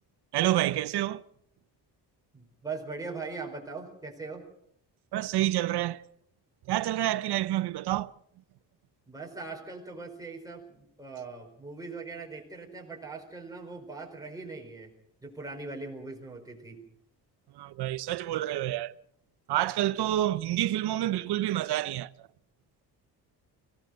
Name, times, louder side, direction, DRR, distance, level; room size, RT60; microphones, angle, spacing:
voice 1, 0.3-1.2 5.1-6.0 6.7-8.1 17.6-18.9 19.5-22.1, right 14 dB, 70° right, 0.8 m, -28 dB
voice 2, 2.3-4.4 9.1-14.9 15.2-16.8, right 3 dB, 10° right, 4.6 m, -40 dB
25.0 x 17.0 x 6.4 m
cardioid pair, 170°, 41 cm